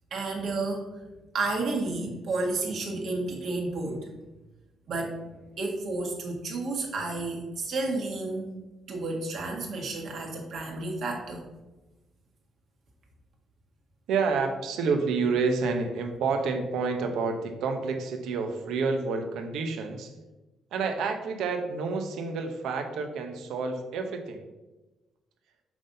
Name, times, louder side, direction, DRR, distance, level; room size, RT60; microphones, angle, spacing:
voice 1, 0.1-0.9 1.3-4.1 4.9-5.2 5.6-8.5 8.9-11.5, right 3 dB, 65° right, 0 dB, 1.6 m, -31 dB
voice 2, 14.1-20.1 20.7-24.5, right 4 dB, 80° right, 6 dB, 0.8 m, -29 dB
6.1 x 3.9 x 5.1 m, 1.1 s
cardioid pair, 90°, 0 cm